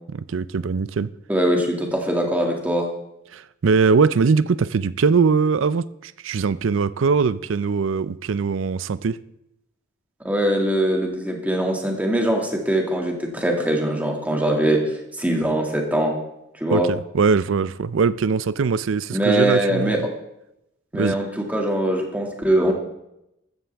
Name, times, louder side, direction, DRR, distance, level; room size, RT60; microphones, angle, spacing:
voice 1, 0.1-1.1 3.3-9.2 16.7-20.1 20.9-21.2, right 5 dB, 80° right, 0.5 m, -21 dB
voice 2, 1.3-2.9 10.2-16.2 16.6-16.9 19.1-20.1 20.9-22.7, right 1 dB, 10° right, 2.1 m, -22 dB
15.0 x 13.5 x 3.5 m
head